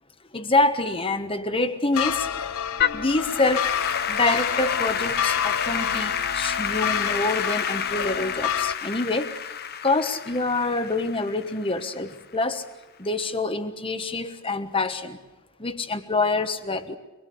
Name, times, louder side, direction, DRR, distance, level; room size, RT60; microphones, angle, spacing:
voice 1, 0.3-2.3 2.9-3.7 4.1-9.3 9.8-12.6 13.0-15.2 15.6-17.0, left 2 dB, 25° left, 9 dB, 1.3 m, -26 dB
sound 1, 1.9-8.8, left 8 dB, 75° left, 0.7 m, -29 dB
Applause / Keyboard (musical), 2.8-12.1, left 8 dB, 45° left, 0.9 m, -29 dB
25.5 x 21.0 x 7.0 m, 1.2 s
head